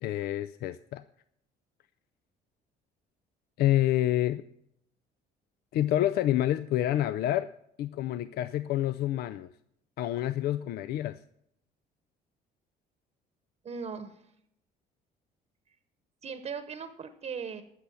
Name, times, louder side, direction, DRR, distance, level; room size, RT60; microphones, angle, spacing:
voice 1, 0.0-1.0 3.6-4.5 5.7-7.5 7.8-9.5 10.0-11.2, left 13 dB, 70° left, 13 dB, 0.4 m, -28 dB
voice 2, 13.6-14.3 16.2-17.6, right 6 dB, 40° right, 9 dB, 1.0 m, -38 dB
15.0 x 6.3 x 7.0 m, 0.76 s
cardioid pair, 110°, 17 cm